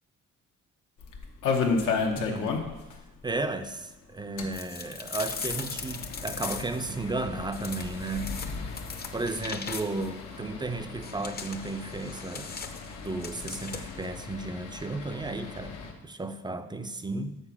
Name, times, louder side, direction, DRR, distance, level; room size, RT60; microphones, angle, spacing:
sound 1, 1.0-3.0 3.2-3.3 3.6-3.7 4.2-15.9, left 4 dB, 85° left, 1.0 m, -35 dB
voice 1, 2.2-2.6 3.2-8.3 9.1-12.5 13.0-17.4, right 2 dB, 15° right, 10 dB, 0.4 m, -34 dB
sound 2, 4.5-6.9 7.5-10.2 11.0-14.1, left 5 dB, 30° left, 0.6 m, -39 dB
6.8 x 4.1 x 5.9 m, 1.1 s
cardioid pair, 90°, 30 cm